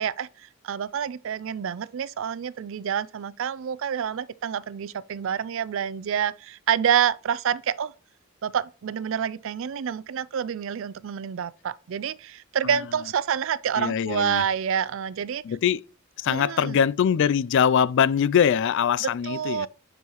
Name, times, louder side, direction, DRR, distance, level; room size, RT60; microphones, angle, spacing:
voice 1, 0.0-7.9 8.4-15.4 16.3-16.8 19.0-19.7, right 8 dB, 65° right, 0.4 m, -28 dB
voice 2, 13.8-14.4 15.4-15.8 16.2-19.7, left 8 dB, 60° left, 0.3 m, -22 dB
9.2 x 5.5 x 3.0 m
head